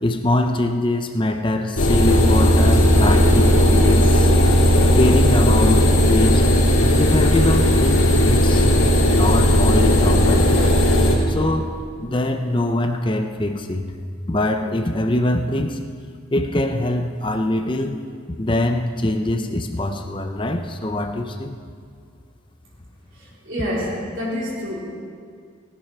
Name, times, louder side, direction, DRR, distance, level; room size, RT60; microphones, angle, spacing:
voice 1, 0.0-4.3 4.9-6.5 7.0-8.7 9.1-10.5 11.3-14.0 14.3-15.8 16.3-18.0 18.4-21.6, left 1 dB, 25° left, 6 dB, 0.6 m, -23 dB
sound 1, 1.8-11.1, equal, 75° left, 2.9 m, -15 dB
voice 2, 23.1-24.8, equal, 70° right, -5 dB, 3.6 m, -27 dB
18.5 x 9.8 x 5.6 m, 2.1 s
head